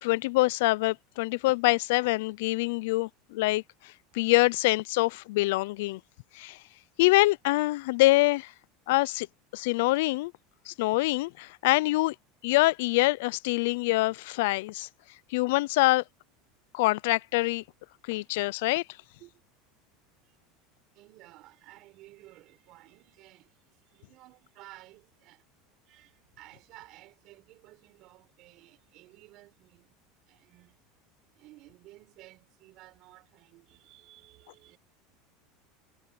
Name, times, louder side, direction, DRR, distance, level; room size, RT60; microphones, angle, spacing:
voice 1, 0.0-6.0 6.3-6.6 7.0-8.5 8.9-9.3 9.5-10.3 10.7-12.1 12.4-14.9 15.3-16.0 16.7-17.6 18.1-18.8, left 21 dB, 65° left, 0.3 m, -25 dB
voice 2, 18.1-18.5 19.2-19.3 20.2-20.6 20.9-25.5 25.8-30.0 30.3-30.8 31.3-34.8, right 18 dB, 40° right, 6.3 m, -55 dB
supercardioid pair, 175°, 0 cm